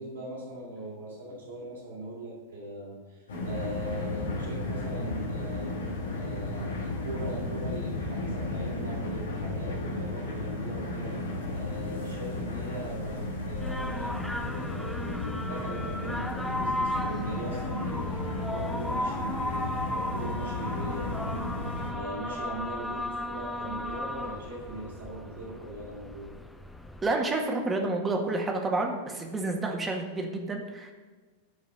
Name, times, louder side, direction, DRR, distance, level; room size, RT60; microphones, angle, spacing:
voice 1, 0.0-5.8 6.1-11.2 11.5-21.3 21.9-26.4, right 1 dB, 65° right, -2 dB, 3.3 m, -40 dB
sound 1, 3.3-21.9, left 2 dB, 65° left, 2.0 m, -34 dB
sound 2, 13.6-27.1, left 1 dB, 5° left, 0.7 m, -35 dB
voice 2, 27.0-30.9, right 2 dB, 15° right, 2 dB, 1.8 m, -29 dB
12.5 x 5.1 x 6.3 m, 1.4 s
figure-of-eight pair, 90°, 0 cm